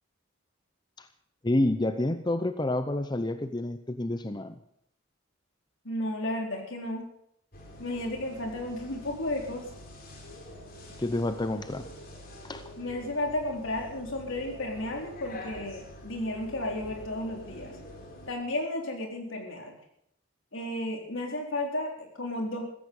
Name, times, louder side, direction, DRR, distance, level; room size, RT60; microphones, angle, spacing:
voice 1, 1.4-4.6 11.0-11.9 12.4-12.7, left 1 dB, 20° left, 10 dB, 0.7 m, -29 dB
voice 2, 5.8-7.1 7.8-9.7 12.8-17.7 18.3-19.7 20.5-22.6, left 1 dB, 75° left, 1 dB, 4.0 m, -33 dB
sound 1, 7.5-18.3, equal, 45° left, 4.0 m, -46 dB
15.5 x 14.5 x 5.4 m, 0.73 s
head